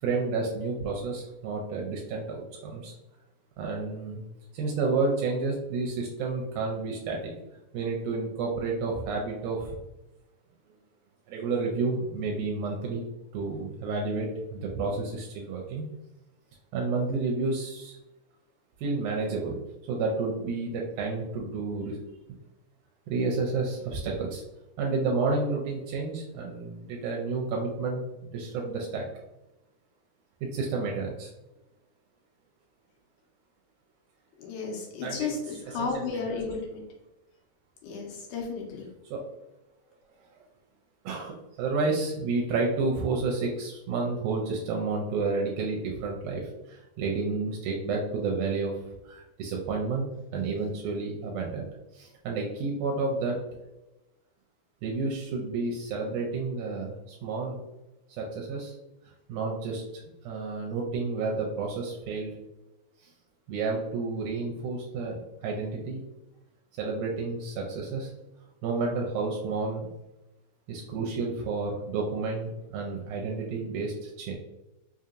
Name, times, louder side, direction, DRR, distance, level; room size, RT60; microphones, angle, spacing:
voice 1, 0.0-2.9 3.6-4.2 4.5-7.3 7.7-9.8 11.3-13.0 13.3-15.9 16.7-18.0 18.8-19.6 19.9-22.0 23.1-24.4 24.8-28.0 28.3-29.1 30.5-31.3 35.0-35.3 35.8-36.2 39.1-39.2 41.0-48.8 49.1-51.7 51.9-53.4 54.8-57.6 58.2-58.8 59.3-59.8 60.2-62.3 63.0-63.1 63.5-66.0 66.8-68.1 68.6-69.9 70.7-74.4, right 3 dB, 85° right, -1 dB, 2.0 m, -30 dB
voice 2, 34.4-36.8 37.8-38.9, left 4 dB, 85° left, -2 dB, 2.2 m, -33 dB
5.0 x 2.8 x 2.5 m, 0.95 s
omnidirectional pair, 3.5 m